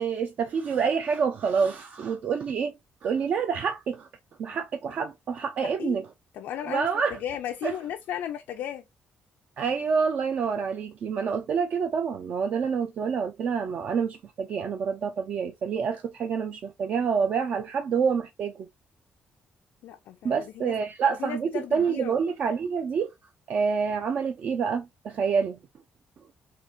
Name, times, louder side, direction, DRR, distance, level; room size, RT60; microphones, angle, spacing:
voice 1, 0.0-2.7 3.0-4.1 4.4-6.1 6.6-7.2 7.6-7.7 9.6-18.7 20.2-23.1 23.5-25.6, right 6 dB, 45° right, 0.4 m, -27 dB
voice 2, 5.6-6.0 6.3-8.8 19.8-20.7 21.2-22.2, left 10 dB, 90° left, 0.4 m, -35 dB
3.9 x 2.4 x 2.5 m
cardioid pair, 175°, 3 cm